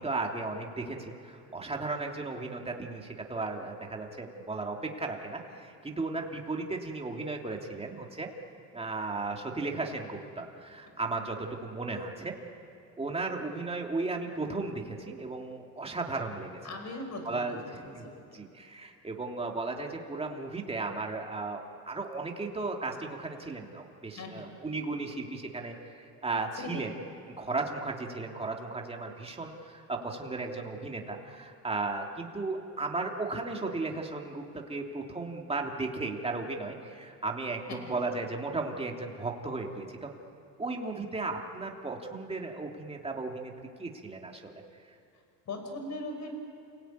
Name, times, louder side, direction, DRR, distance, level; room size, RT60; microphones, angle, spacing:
voice 1, 0.0-8.3 8.7-12.3 13.0-16.6 17.2-21.6 21.9-26.9 27.4-40.1 40.6-43.5 43.8-44.6, right 3 dB, 15° right, 1 dB, 3.1 m, -35 dB
voice 2, 16.6-17.5 17.8-18.4 24.2-24.5 26.6-26.9 37.7-38.0 45.5-46.3, left 2 dB, 45° left, 5 dB, 5.6 m, -40 dB
29.0 x 18.5 x 9.5 m, 2.5 s
cardioid pair, 110°, 39 cm